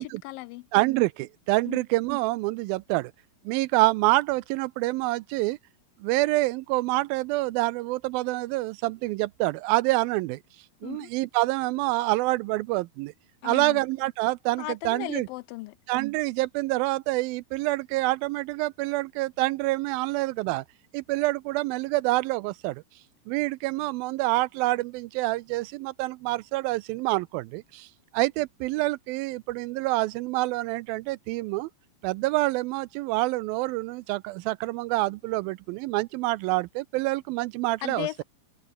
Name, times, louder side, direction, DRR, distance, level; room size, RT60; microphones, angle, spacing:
voice 1, 0.0-0.7 1.7-1.8 10.8-11.1 13.4-13.8 14.6-15.8 37.8-38.2, left 19 dB, 80° left, 2.1 m, -36 dB
voice 2, 0.7-3.1 3.5-5.6 6.0-10.4 10.8-13.1 13.4-15.3 15.9-20.6 20.9-22.8 23.3-27.9 28.1-31.7 32.0-38.2, right 20 dB, 80° right, 2.2 m, -27 dB
omnidirectional pair, 4.4 m